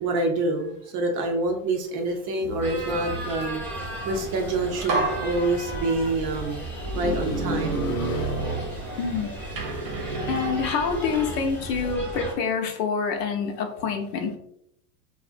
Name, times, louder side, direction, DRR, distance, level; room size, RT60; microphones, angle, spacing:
voice 1, 0.0-6.6 6.9-7.9, right 2 dB, 40° right, 3 dB, 0.5 m, -27 dB
sound 1, 2.6-12.3, right 1 dB, 5° left, 0.8 m, -35 dB
sound 2, 4.3-4.4 4.9-6.2 6.8-9.1 9.6-11.4, right 3 dB, 90° right, 0.9 m, -30 dB
voice 2, 6.9-8.4 9.0-9.3 10.3-14.3, left 5 dB, 75° left, 4 dB, 0.7 m, -28 dB
2.4 x 2.1 x 2.5 m, 0.74 s
supercardioid pair, 115°, 49 cm